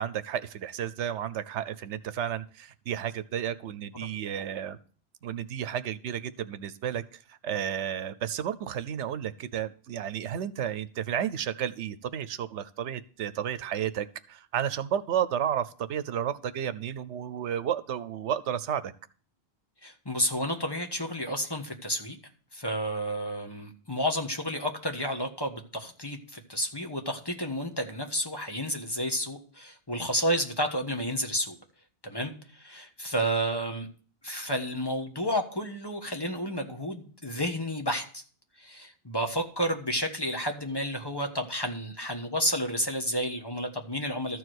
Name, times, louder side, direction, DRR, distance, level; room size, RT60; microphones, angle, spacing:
voice 1, 0.0-4.8 5.2-18.9, right 9 dB, 90° right, 14 dB, 1.0 m, -32 dB
voice 2, 19.8-22.2 22.5-31.5 32.0-33.9 34.2-38.2 38.6-44.4, equal, 20° left, 4 dB, 1.4 m, -31 dB
13.5 x 4.8 x 8.0 m, 0.42 s
omnidirectional pair, 1.1 m